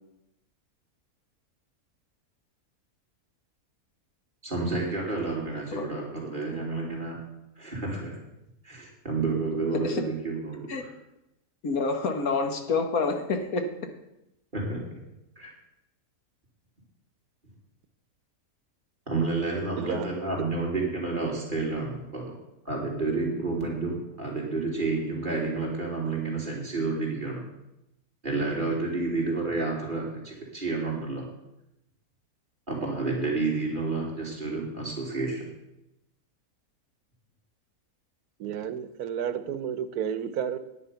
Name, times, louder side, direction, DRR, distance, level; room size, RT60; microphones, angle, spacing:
voice 1, 4.4-7.2 7.6-8.2 8.6-10.9 14.5-14.9 15.4-15.5 19.1-22.3 22.6-27.4 28.2-31.2 32.7-35.5, right 3 dB, 35° right, -3 dB, 3.2 m, -30 dB
voice 2, 11.6-13.6, left 4 dB, 75° left, 6 dB, 1.7 m, -27 dB
voice 3, 19.8-20.1 38.4-40.6, right 8 dB, 90° right, 13 dB, 1.3 m, -31 dB
10.0 x 9.8 x 5.6 m, 0.88 s
omnidirectional pair, 1.6 m